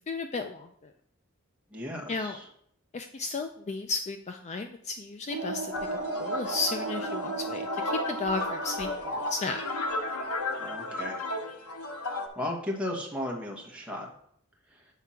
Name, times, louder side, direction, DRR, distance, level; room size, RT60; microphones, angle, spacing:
voice 1, 0.1-0.7 2.1-2.4 2.9-5.7 6.2-7.7 8.1-9.6, left 3 dB, 30° left, 6 dB, 0.4 m, -33 dB
voice 2, 1.7-2.5 10.6-11.2 12.1-14.1 14.7-14.8, left 1 dB, 5° right, -1 dB, 1.3 m, -35 dB
sound 1, 5.3-10.5, right 3 dB, 60° right, 0.9 m, -36 dB
sound 2, 5.7-12.3, left 2 dB, 90° left, 0.9 m, -34 dB
7.5 x 3.5 x 5.7 m, 0.67 s
head